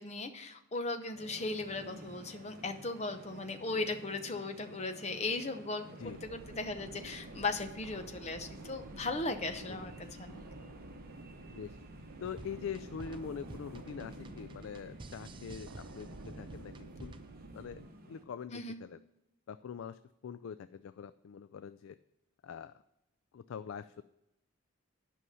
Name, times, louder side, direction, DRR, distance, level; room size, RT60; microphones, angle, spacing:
voice 1, 0.0-10.5 18.5-18.8, left 3 dB, 30° left, 7 dB, 0.8 m, -37 dB
sound 1, 1.1-18.2, equal, 40° right, 1.1 m, -52 dB
sound 2, 6.0-17.9, right 3 dB, 90° right, 0.8 m, -51 dB
voice 2, 12.2-17.1 17.5-17.8 18.1-19.0 19.5-22.0 22.4-22.7 23.3-24.0, left 7 dB, 65° left, 12 dB, 0.3 m, -44 dB
sound 3, 12.2-17.4, right 2 dB, 20° right, 0.4 m, -51 dB
11.0 x 5.6 x 5.6 m, 0.90 s
head